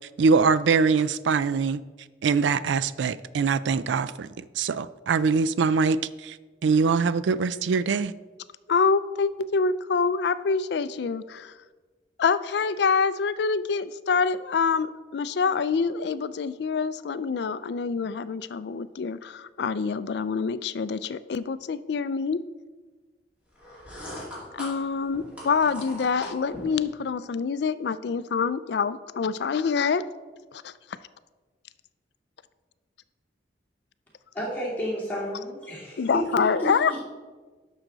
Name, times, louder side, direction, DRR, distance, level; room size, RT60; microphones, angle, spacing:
voice 1, 0.2-1.8 2.2-6.4 6.6-8.1, right 5 dB, 80° right, 16 dB, 0.4 m, -23 dB
voice 2, 8.7-11.5 12.2-22.4 24.5-30.0 30.5-30.7 36.0-37.0, left 5 dB, 65° left, 15 dB, 0.4 m, -26 dB
sound 1, 23.5-26.8, left 1 dB, 5° right, 2.3 m, -40 dB
voice 3, 34.3-37.0, equal, 10° left, -7 dB, 2.5 m, -31 dB
11.0 x 6.5 x 3.9 m, 1.4 s
head